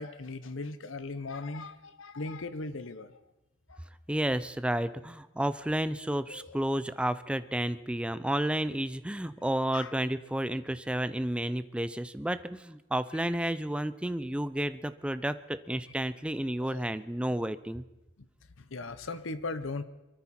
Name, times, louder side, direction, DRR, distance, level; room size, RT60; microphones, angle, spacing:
voice 1, 0.0-3.2 3.7-3.8 6.3-6.6 9.7-9.9 13.1-13.2 16.6-16.8 18.6-19.8, left 3 dB, 80° left, 12 dB, 0.9 m, -38 dB
voice 2, 4.1-17.8, right 1 dB, 5° right, 13 dB, 0.4 m, -31 dB
24.5 x 13.5 x 4.3 m, 1.0 s
head